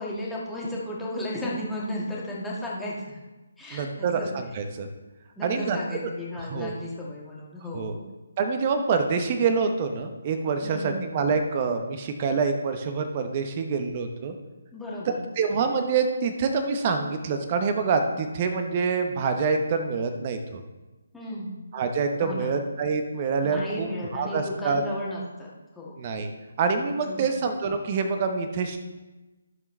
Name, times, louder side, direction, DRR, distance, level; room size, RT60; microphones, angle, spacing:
voice 1, 0.0-3.2 3.6-4.3 5.4-8.0 10.6-11.1 14.7-15.2 21.1-21.6 22.2-22.5 23.4-26.0 27.0-27.3, left 1 dB, 5° left, -6 dB, 1.7 m, -34 dB
voice 2, 3.7-4.9 5.4-5.8 6.4-6.7 7.7-7.9 8.4-14.4 15.4-20.6 21.7-23.9 24.1-24.8 26.0-26.3 26.6-28.8, right 5 dB, 30° right, 6 dB, 0.9 m, -26 dB
13.0 x 7.0 x 3.3 m, 1.1 s
figure-of-eight pair, 145°, 0 cm